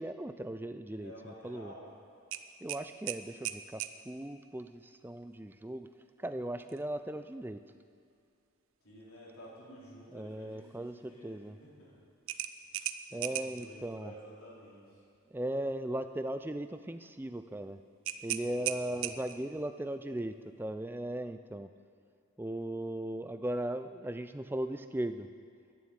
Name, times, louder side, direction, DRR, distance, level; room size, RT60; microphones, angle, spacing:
voice 1, 0.0-1.7 2.6-5.9 6.2-7.6 10.1-11.6 13.1-14.1 15.3-17.8 18.2-21.7 22.4-25.3, right 1 dB, 10° right, 10 dB, 0.3 m, -38 dB
voice 2, 0.9-2.0 8.8-12.0 12.7-12.8 13.1-15.1 18.4-19.5, equal, 75° left, -6 dB, 3.9 m, -52 dB
sound 1, 2.3-4.0 6.6-6.8 7.3-7.4 12.3-13.7 18.0-19.5, right 12 dB, 65° right, 0.5 m, -37 dB
11.0 x 7.3 x 8.8 m, 2.3 s
head